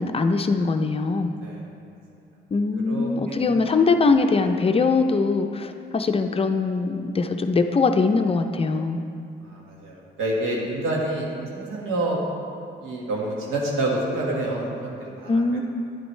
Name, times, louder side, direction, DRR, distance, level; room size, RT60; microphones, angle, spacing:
voice 1, 0.0-1.3 2.5-9.0 15.3-15.6, left 4 dB, 30° left, 6 dB, 0.5 m, -22 dB
voice 2, 1.3-1.6 2.7-3.4 9.4-12.2 12.8-15.6, right 1 dB, 85° right, -2 dB, 1.6 m, -28 dB
9.9 x 7.8 x 3.2 m, 2.5 s
cardioid pair, 90°, 20 cm